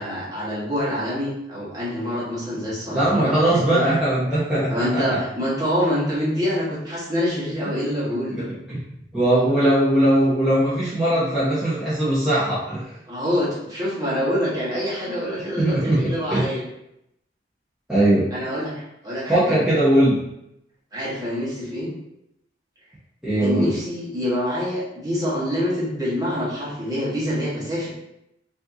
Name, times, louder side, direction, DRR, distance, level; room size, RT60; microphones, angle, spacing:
voice 1, 0.0-3.8 4.7-8.5 13.1-16.6 18.3-19.6 20.9-21.9 23.4-27.9, equal, 20° right, -8 dB, 1.3 m, -26 dB
voice 2, 2.9-5.2 8.3-8.8 9.1-12.9 15.6-16.4 17.9-18.3 19.3-20.2 23.2-23.7, right 1 dB, 5° right, -12 dB, 0.9 m, -20 dB
5.1 x 2.7 x 2.7 m, 0.82 s
head